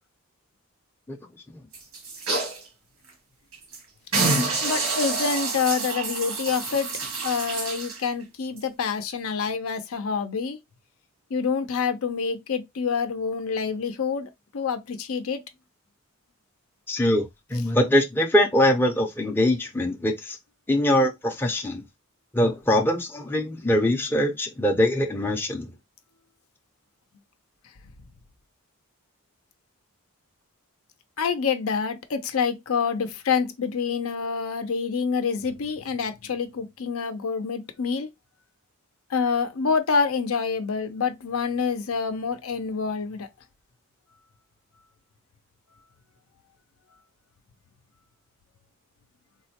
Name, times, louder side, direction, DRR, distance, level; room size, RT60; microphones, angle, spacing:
sound 1, 1.7-2.6 3.1-3.2 3.5-3.8 4.1-8.0 8.6-8.7, right 3 dB, 85° right, 1.2 m, -27 dB
voice 1, 4.6-6.9 7.2-10.6 11.3-15.4 31.2-38.1 39.1-43.3, left 5 dB, 75° left, 0.6 m, -27 dB
voice 2, 16.9-17.3 17.5-20.4 20.7-21.8 22.3-25.7, left 1 dB, 10° left, 0.5 m, -23 dB
3.7 x 2.1 x 2.8 m
head